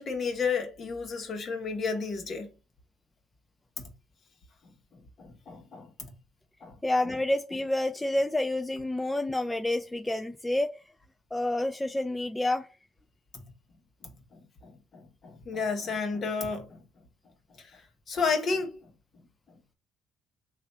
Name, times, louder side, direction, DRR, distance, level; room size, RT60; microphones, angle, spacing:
voice 1, 0.0-2.5 3.8-3.9 4.9-6.1 6.6-6.8 13.3-13.4 14.0-16.8 17.6-17.8 18.1-18.7 19.5-19.6, left 5 dB, 50° left, 1.2 m, -32 dB
voice 2, 6.8-10.8 11.3-12.7, left 1 dB, 10° left, 0.4 m, -28 dB
3.3 x 2.4 x 4.0 m
supercardioid pair, 80°, 0 cm